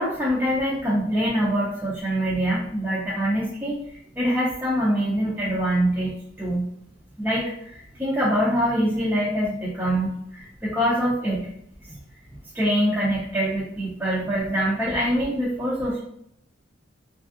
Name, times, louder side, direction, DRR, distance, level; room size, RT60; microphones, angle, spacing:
voice 1, 0.0-6.7 7.2-11.5 12.5-16.0, equal, 10° right, -8 dB, 0.5 m, -24 dB
3.1 x 2.5 x 2.4 m, 0.72 s
head